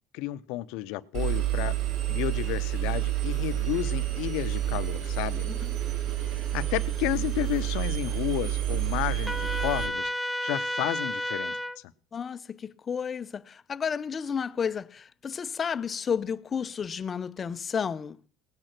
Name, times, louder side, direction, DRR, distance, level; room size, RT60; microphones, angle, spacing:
voice 1, 0.1-1.7 2.1-5.5 6.3-10.1 10.4-11.6, left 16 dB, 75° left, 0.8 m, -32 dB
Engine, 1.1-9.9, right 13 dB, 70° right, 3.7 m, -29 dB
voice 2, 5.4-5.8 12.1-18.3, left 7 dB, 35° left, 0.7 m, -32 dB
Trumpet, 9.3-11.8, left 1 dB, ahead, 1.4 m, -31 dB
18.0 x 9.2 x 6.0 m
hypercardioid pair, 75°, 0 cm